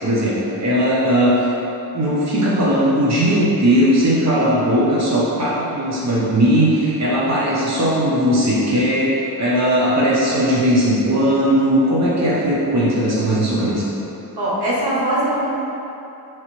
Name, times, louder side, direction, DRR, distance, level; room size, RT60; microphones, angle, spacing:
voice 1, 0.0-1.5 1.9-9.1 9.4-13.8, equal, 45° right, -7 dB, 0.9 m, -18 dB
voice 2, 14.4-15.5, right 1 dB, 85° right, -8 dB, 0.9 m, -21 dB
3.9 x 3.1 x 3.0 m, 2.9 s
wide cardioid pair, 70°, 39 cm